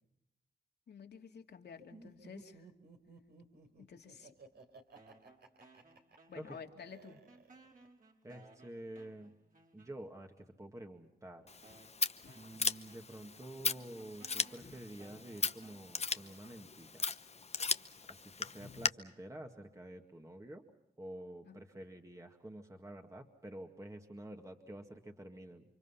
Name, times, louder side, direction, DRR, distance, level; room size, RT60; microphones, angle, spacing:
voice 1, 0.9-2.7 3.9-4.3 6.3-7.2 12.2-12.3 21.5-21.6, left 6 dB, 70° left, 3 dB, 2.5 m, -51 dB
Laughter, 1.9-7.9, right 3 dB, 70° right, 3.6 m, -57 dB
sound 1, 5.0-6.8 7.1-10.3 11.0-11.1 11.6-17.0, right 3 dB, 50° right, 5.2 m, -63 dB
voice 2, 8.2-9.3 9.7-11.5 12.3-17.1 18.1-20.6 21.0-25.6, right 1 dB, 15° right, 3 dB, 2.0 m, -49 dB
Scissors, 11.5-18.9, left 4 dB, 40° left, 0.9 m, -38 dB
30.0 x 25.0 x 5.7 m, 0.81 s
cardioid pair, 65°, 18 cm